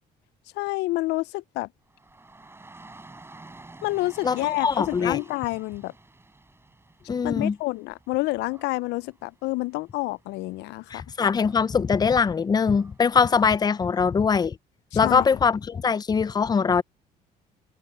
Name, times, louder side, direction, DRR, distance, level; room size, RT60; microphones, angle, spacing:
voice 1, 0.6-1.7 3.8-5.9 7.2-11.0 14.9-15.2, left 20 dB, 85° left, 0.4 m, -28 dB
Dog / Rain, 1.9-14.0, right 2 dB, 15° right, 7.7 m, -51 dB
voice 2, 4.2-5.2 7.1-7.6 10.9-14.6 14.9-16.8, left 6 dB, 25° left, 0.5 m, -22 dB
cardioid pair, 110°, 17 cm